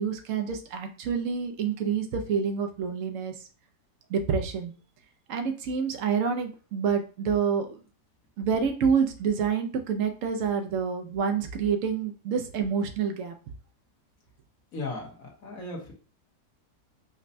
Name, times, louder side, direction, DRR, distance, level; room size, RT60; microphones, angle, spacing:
voice 1, 0.0-3.3 4.1-4.7 5.3-7.8 8.4-13.3, right 6 dB, 65° right, 4 dB, 0.8 m, -27 dB
voice 2, 14.7-15.9, left 2 dB, 60° left, -1 dB, 1.4 m, -36 dB
5.1 x 2.1 x 2.6 m, 0.36 s
omnidirectional pair, 1.7 m